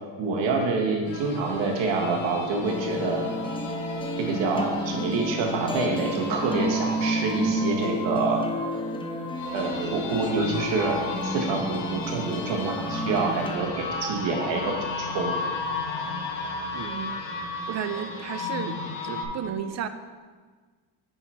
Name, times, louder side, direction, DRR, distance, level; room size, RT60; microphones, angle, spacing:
voice 1, 0.2-3.2 4.3-8.4 9.5-11.0 11.2-14.7 15.1-15.3, right 3 dB, 70° right, 1 dB, 1.5 m, -27 dB
sound 1, 1.0-19.2, left 2 dB, 85° left, 1.1 m, -34 dB
sound 2, 2.6-13.6, equal, 10° left, 0.5 m, -31 dB
voice 2, 16.7-17.1 17.4-18.8 19.0-19.9, right 9 dB, 35° right, 10 dB, 0.5 m, -33 dB
5.7 x 5.6 x 4.3 m, 1.5 s
cardioid pair, 95°, 46 cm